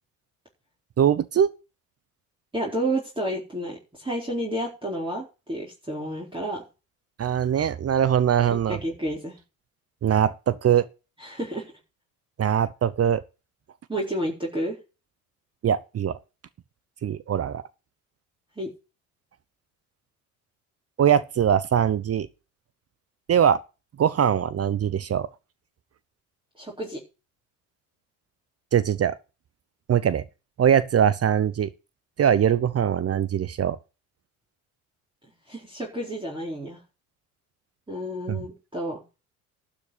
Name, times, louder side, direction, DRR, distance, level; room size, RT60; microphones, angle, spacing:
voice 1, 1.0-1.5 7.2-8.8 10.0-10.9 12.4-13.2 15.6-16.1 17.0-17.6 21.0-22.3 23.3-23.6 24.0-25.3 28.7-29.2 29.9-30.2 30.6-31.7 32.2-33.8 38.3-38.4, right 9 dB, 35° right, 0.8 m, -22 dB
voice 2, 2.5-6.6 8.7-9.4 11.2-11.7 13.9-14.8 18.6-18.7 26.6-27.0 35.5-36.8 37.9-39.0, right 1 dB, 10° right, 4.2 m, -30 dB
12.0 x 5.2 x 8.4 m
hypercardioid pair, 60°, 43 cm